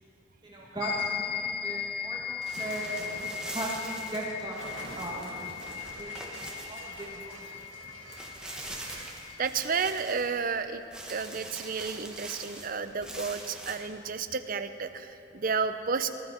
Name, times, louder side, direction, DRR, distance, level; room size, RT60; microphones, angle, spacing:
voice 1, 0.4-3.2 3.5-5.5 6.0-7.4, right 1 dB, 20° right, -5 dB, 2.1 m, -38 dB
sound 1, 0.8-9.5, left 8 dB, 50° left, 0.5 m, -38 dB
sound 2, 2.4-7.3 7.7-7.8 8.1-10.6 10.9-13.8, right 1 dB, 5° right, 1.4 m, -43 dB
Explosion, 2.6-9.2, right 2 dB, 75° right, 1.7 m, -47 dB
voice 2, 9.4-10.8 11.1-16.1, right 5 dB, 45° right, 9 dB, 0.6 m, -31 dB
20.5 x 12.0 x 4.4 m, 2.7 s
head